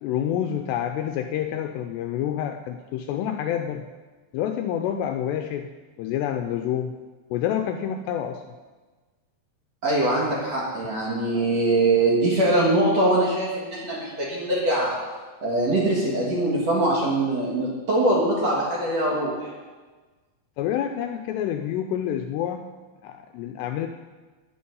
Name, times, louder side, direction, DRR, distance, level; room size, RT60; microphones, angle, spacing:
voice 1, 0.0-3.8 4.3-5.7 6.0-6.9 7.3-8.4 20.6-22.6 23.0-23.9, left 10 dB, 80° left, 6 dB, 2.5 m, -28 dB
voice 2, 9.8-15.0 15.4-19.5, right 2 dB, 50° right, -4 dB, 2.2 m, -22 dB
13.0 x 10.5 x 5.5 m, 1.3 s
omnidirectional pair, 5.3 m